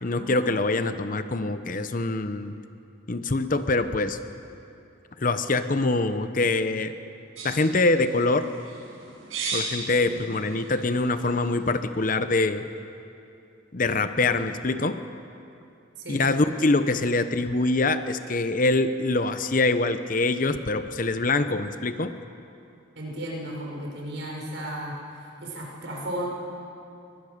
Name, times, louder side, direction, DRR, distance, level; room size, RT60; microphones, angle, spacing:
voice 1, 0.0-2.5 3.1-4.2 5.2-6.9 7.4-8.5 9.5-12.7 13.7-15.0 16.1-22.1, left 2 dB, 40° left, 10 dB, 0.8 m, -24 dB
sound 1, 7.4-11.9, right 3 dB, 90° right, 5.8 m, -37 dB
voice 2, 23.0-24.9 25.4-26.2, right 1 dB, 60° right, -2 dB, 5.9 m, -34 dB
23.0 x 20.5 x 6.7 m, 2.7 s
head